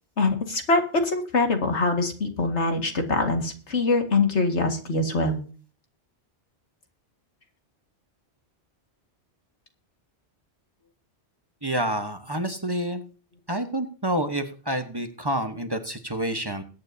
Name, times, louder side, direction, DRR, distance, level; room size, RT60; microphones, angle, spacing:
voice 1, 0.2-5.4, left 3 dB, 85° left, 4 dB, 2.2 m, -24 dB
voice 2, 11.6-13.0 13.5-16.6, right 1 dB, 20° right, 7 dB, 1.1 m, -28 dB
21.5 x 8.7 x 2.8 m, 0.38 s
omnidirectional pair, 1.1 m